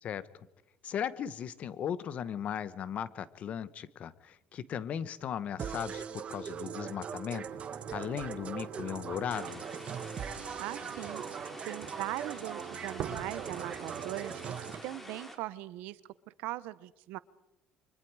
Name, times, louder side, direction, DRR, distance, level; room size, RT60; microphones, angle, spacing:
voice 1, 0.8-7.5 7.9-9.6, left 8 dB, 50° left, 16 dB, 1.2 m, -37 dB
sound 1, 5.6-14.7, right 7 dB, 45° right, 1.3 m, -41 dB
sound 2, 7.5-14.8, right 8 dB, 65° right, 3.3 m, -46 dB
sound 3, 9.3-15.4, equal, 10° left, 3.9 m, -47 dB
voice 2, 10.6-11.2 11.6-14.6 14.8-16.0 16.4-17.2, right 17 dB, 85° right, 17 dB, 0.9 m, -40 dB
29.5 x 24.0 x 4.8 m, 0.88 s
cardioid pair, 110°, 3 cm